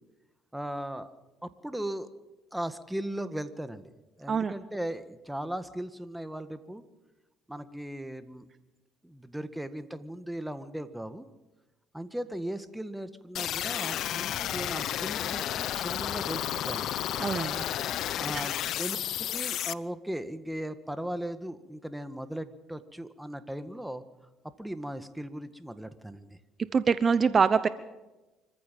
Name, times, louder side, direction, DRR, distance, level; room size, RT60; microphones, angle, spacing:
voice 1, 0.5-1.1 1.4-2.1 2.5-3.9 4.2-6.8 7.5-8.5 9.0-11.3 11.9-16.9 18.1-18.5 18.8-24.0 24.6-26.4, right 1 dB, 5° right, 11 dB, 1.7 m, -37 dB
sound 1, 13.3-19.7, left 12 dB, 70° left, 0.7 m, -32 dB
voice 2, 17.2-17.7 18.1-18.2 26.7-27.7, right 5 dB, 40° right, 14 dB, 0.9 m, -24 dB
25.5 x 14.5 x 7.5 m, 1.1 s
cardioid pair, 85°, 0 cm